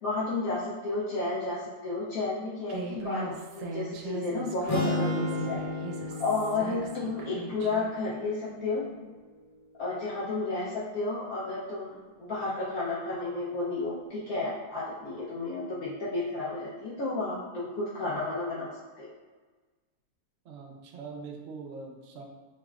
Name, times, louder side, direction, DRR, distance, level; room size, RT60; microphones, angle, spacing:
voice 1, 0.0-5.6 6.2-8.8 9.8-18.7 19.0-19.1, left 3 dB, 70° left, -8 dB, 1.2 m, -32 dB
Human voice, 2.7-7.9, right 4 dB, 85° right, 1.1 m, -39 dB
sound 1, 4.7-8.8, left 2 dB, 50° left, 0.4 m, -34 dB
voice 2, 20.4-22.2, right 4 dB, 60° right, 1 dB, 0.8 m, -42 dB
4.8 x 3.0 x 2.4 m, 1.4 s
omnidirectional pair, 1.6 m